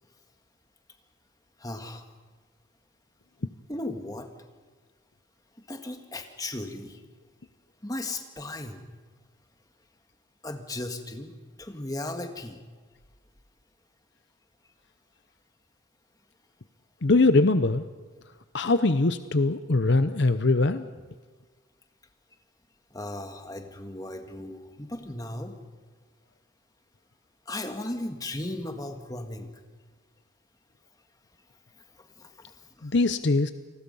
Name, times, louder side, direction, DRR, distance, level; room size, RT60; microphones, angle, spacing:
voice 1, 1.6-2.1 3.7-4.3 5.6-7.0 7.8-8.9 10.4-12.6 22.9-25.6 27.5-29.6 31.9-32.9, left 1 dB, 20° left, 5 dB, 1.8 m, -36 dB
voice 2, 17.0-17.8 18.5-20.9 32.8-33.5, left 3 dB, 55° left, 11 dB, 0.7 m, -22 dB
29.0 x 20.0 x 5.5 m, 1.4 s
head